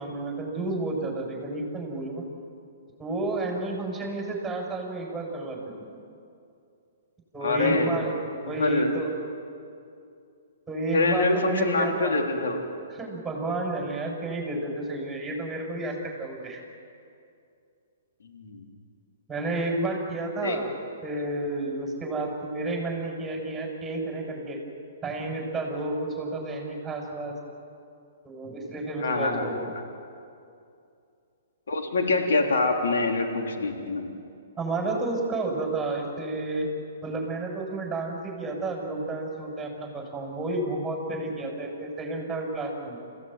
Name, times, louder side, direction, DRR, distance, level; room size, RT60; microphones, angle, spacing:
voice 1, 0.0-2.2 3.0-5.8 7.3-9.1 10.7-12.2 12.9-16.6 19.3-20.7 21.0-24.6 25.0-27.4 28.2-29.7 34.6-36.7 37.0-43.0, right 2 dB, 10° right, 0 dB, 7.3 m, -31 dB
voice 2, 7.4-7.9 8.5-8.9 10.9-12.7 18.3-18.6 20.4-20.6 29.0-29.5 29.8-29.9 31.7-34.1, left 3 dB, 75° left, 2 dB, 3.9 m, -25 dB
27.5 x 17.0 x 9.4 m, 2.5 s
hypercardioid pair, 135°, 0 cm